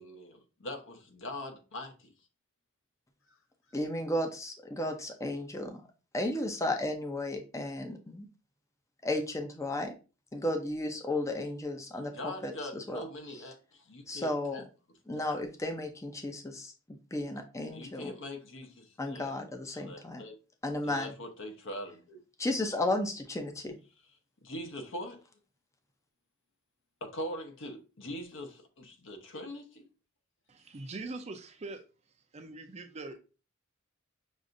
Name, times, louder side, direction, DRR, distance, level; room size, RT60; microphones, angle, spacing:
voice 1, 0.0-2.1 11.9-14.6 15.1-15.4 17.7-19.4 19.7-20.3 20.8-22.2 24.4-25.2 27.0-29.8, left 1 dB, 65° left, 0.9 m, -42 dB
voice 2, 3.7-5.8 6.1-8.3 9.0-9.9 10.3-13.0 14.1-14.6 15.1-18.1 19.0-20.2 20.6-21.1 22.4-23.8, left 1 dB, 15° left, 0.5 m, -34 dB
voice 3, 30.5-31.8 32.3-33.2, right 3 dB, 30° right, 0.5 m, -42 dB
6.2 x 2.5 x 2.5 m
head